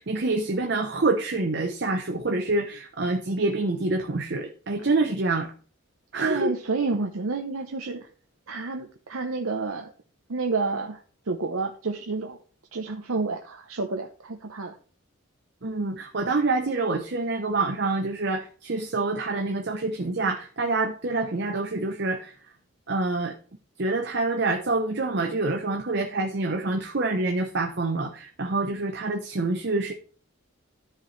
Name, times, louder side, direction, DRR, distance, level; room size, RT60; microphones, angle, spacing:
voice 1, 0.0-5.5 6.1-6.5 15.6-22.3 22.9-23.3 23.8-29.9, right 3 dB, 55° right, 3 dB, 0.8 m, -26 dB
voice 2, 6.2-8.1 8.5-9.9 10.3-12.4 12.7-14.8, right 3 dB, 85° right, 3 dB, 0.8 m, -29 dB
13.0 x 5.0 x 3.2 m, 0.41 s
head